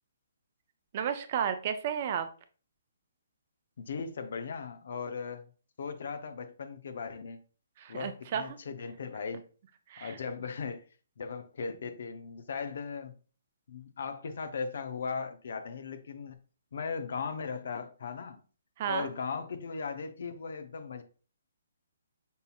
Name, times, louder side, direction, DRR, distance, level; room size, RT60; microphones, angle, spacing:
voice 1, 0.9-2.3 7.8-8.6 9.9-10.2 18.8-19.1, right 8 dB, 45° right, 0.4 m, -32 dB
voice 2, 3.8-5.5 5.8-7.4 7.9-9.4 10.0-10.8 11.2-13.1 13.7-16.4 16.7-18.4 18.9-21.0, left 5 dB, 65° left, 0.5 m, -38 dB
5.4 x 2.7 x 2.3 m
hypercardioid pair, 140°, 0 cm